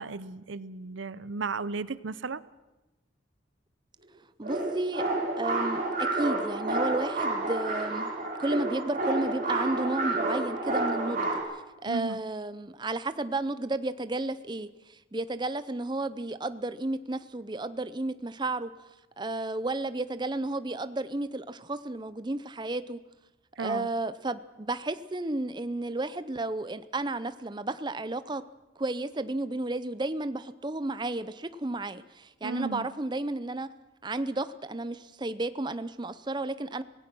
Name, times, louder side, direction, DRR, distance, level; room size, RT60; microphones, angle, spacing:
voice 1, 0.0-2.4 11.9-12.2 23.6-23.9 32.4-32.9, right 4 dB, 80° right, 17 dB, 0.7 m, -34 dB
voice 2, 4.4-5.0 5.4-8.1 8.4-11.3 11.8-18.7 19.2-23.0 23.6-28.4 28.8-33.7 34.0-36.8, right 2 dB, 25° right, 13 dB, 0.6 m, -32 dB
sound 1, 4.4-11.4, right 2 dB, 45° right, 4.6 m, -30 dB
25.5 x 18.0 x 6.2 m, 1.1 s
head